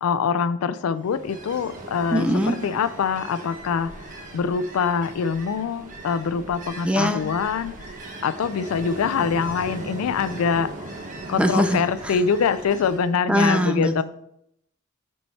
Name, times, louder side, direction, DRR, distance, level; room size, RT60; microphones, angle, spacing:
voice 1, 0.0-3.9 4.3-8.0 8.2-14.0, left 6 dB, 85° left, 13 dB, 0.4 m, -24 dB
Ocean, 1.0-13.1, right 2 dB, 35° right, 0.9 m, -39 dB
voice 2, 2.1-2.6 6.8-7.2 11.4-12.1 13.3-14.0, equal, 5° right, 7 dB, 0.5 m, -21 dB
6.1 x 4.6 x 4.1 m, 0.75 s
head